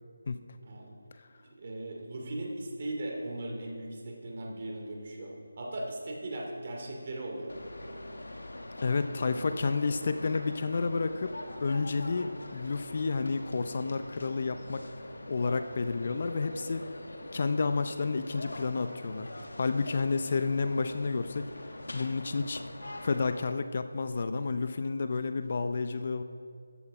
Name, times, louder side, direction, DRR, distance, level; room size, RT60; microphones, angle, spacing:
voice 1, 0.6-0.9 1.6-7.6 9.1-9.4, right 1 dB, 40° right, 0 dB, 2.6 m, -38 dB
sound 1, 7.5-23.5, left 1 dB, 80° left, 1.4 m, -44 dB
voice 2, 8.8-11.3 11.6-14.9 15.3-16.9 17.3-19.3 19.6-21.5 21.9-22.6 23.0-26.2, left 4 dB, 45° left, 10 dB, 0.5 m, -30 dB
14.0 x 9.5 x 4.9 m, 2.2 s
figure-of-eight pair, 165°, 0 cm